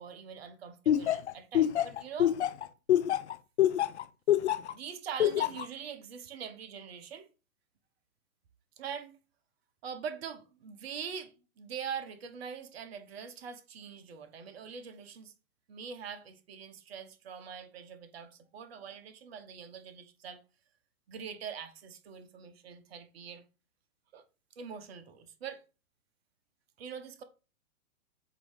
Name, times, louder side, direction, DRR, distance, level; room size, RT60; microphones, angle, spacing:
voice 1, 0.0-2.4 4.7-7.3 8.8-9.2 9.8-15.3 15.7-20.4 21.1-23.4 24.1-24.2 24.6-25.6 26.8-27.2, right 7 dB, 45° right, 1.0 m, -43 dB
Laughter, 0.9-4.7 5.2-5.6, left 11 dB, 55° left, 0.5 m, -25 dB
7.9 x 2.8 x 4.8 m
figure-of-eight pair, 120°, 43 cm